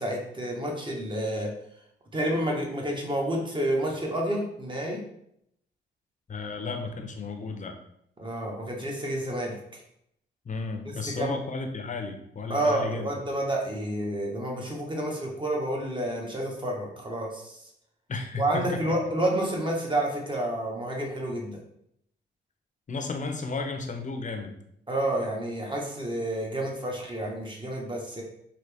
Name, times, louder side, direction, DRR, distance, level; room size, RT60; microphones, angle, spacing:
voice 1, 0.0-1.5 2.1-5.0 8.2-9.6 10.8-11.3 12.5-17.5 18.4-21.6 24.9-28.2, right 1 dB, 25° right, 0 dB, 1.3 m, -29 dB
voice 2, 6.3-7.7 10.4-13.1 18.1-18.7 22.9-24.5, left 3 dB, 40° left, 5 dB, 0.8 m, -33 dB
4.1 x 2.9 x 3.4 m, 0.74 s
cardioid pair, 75°, 20 cm